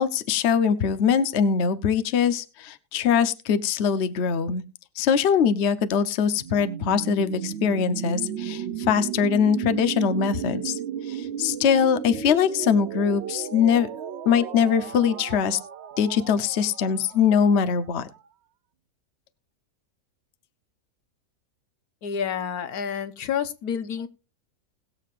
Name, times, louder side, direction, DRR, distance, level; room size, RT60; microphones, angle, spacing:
voice 1, 0.0-4.6 5.0-10.8 11.1-13.9 14.3-15.6 16.0-18.1, left 7 dB, 55° left, 1.0 m, -22 dB
sound 1, 6.4-18.2, right 9 dB, 60° right, 0.8 m, -34 dB
voice 2, 22.0-24.1, left 7 dB, 80° left, 1.5 m, -29 dB
21.0 x 7.2 x 2.5 m
omnidirectional pair, 1.6 m